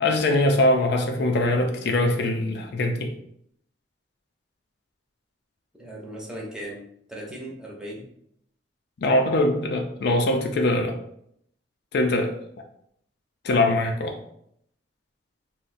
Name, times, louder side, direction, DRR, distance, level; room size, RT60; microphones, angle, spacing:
voice 1, 0.0-3.1 9.0-11.0 11.9-12.3 13.4-14.2, left 1 dB, 65° left, 4 dB, 0.4 m, -22 dB
voice 2, 5.7-6.8 7.1-8.0, right 1 dB, 5° right, -3 dB, 0.6 m, -37 dB
2.5 x 2.1 x 3.9 m, 0.72 s
head